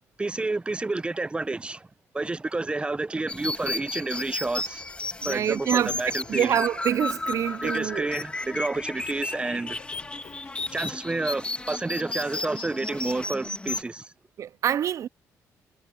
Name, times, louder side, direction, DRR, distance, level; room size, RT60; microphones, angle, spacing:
voice 1, 0.2-1.9 2.1-4.8 5.2-6.5 7.6-9.8 10.7-14.1, right 2 dB, 15° right, 0.8 m, -30 dB
sound 1, 3.3-13.8, left 2 dB, 20° left, 2.5 m, -33 dB
sound 2, 4.6-11.0, left 9 dB, 65° left, 7.3 m, -52 dB
voice 2, 5.2-5.9 6.3-8.1 14.4-15.1, right 10 dB, 60° right, 0.5 m, -26 dB
cardioid pair, 90°, 6 cm